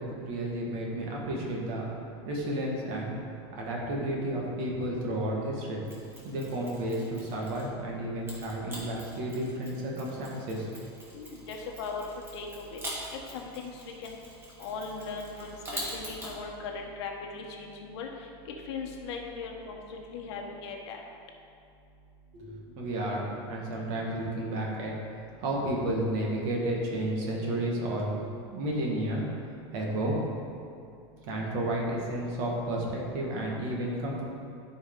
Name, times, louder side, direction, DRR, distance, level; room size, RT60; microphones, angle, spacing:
voice 1, 0.0-1.9 2.3-3.2 3.5-5.8 6.2-10.7 11.1-11.2 22.3-28.1 28.5-29.2 29.7-30.2 31.2-34.2, right 1 dB, 50° right, -2 dB, 1.8 m, -32 dB
Mechanisms, 5.8-7.8 8.3-16.4, right 1 dB, 15° right, 1.7 m, -44 dB
voice 2, 11.1-12.8 13.1-14.2 14.6-18.1 18.4-21.0, left 4 dB, 70° left, 1 dB, 1.2 m, -39 dB
12.5 x 4.7 x 3.8 m, 2.5 s
supercardioid pair, 155°, 14 cm